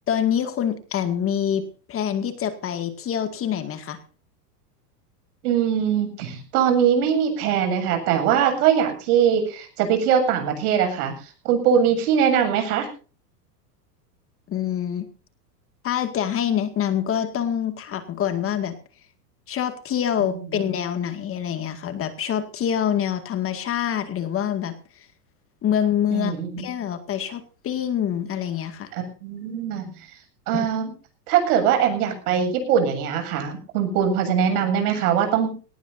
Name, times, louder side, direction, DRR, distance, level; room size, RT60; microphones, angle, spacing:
voice 1, 0.1-4.0 14.5-15.1 15.8-18.8 19.5-25.1 25.6-28.9 30.5-30.7, left 9 dB, 25° left, 9 dB, 2.1 m, -26 dB
voice 2, 5.4-11.1 11.4-12.9 26.1-26.7 28.9-29.9 30.5-30.9 31.3-35.6, right 8 dB, 65° right, 6 dB, 7.9 m, -21 dB
21.5 x 19.0 x 2.7 m, 0.38 s
supercardioid pair, 130°, 48 cm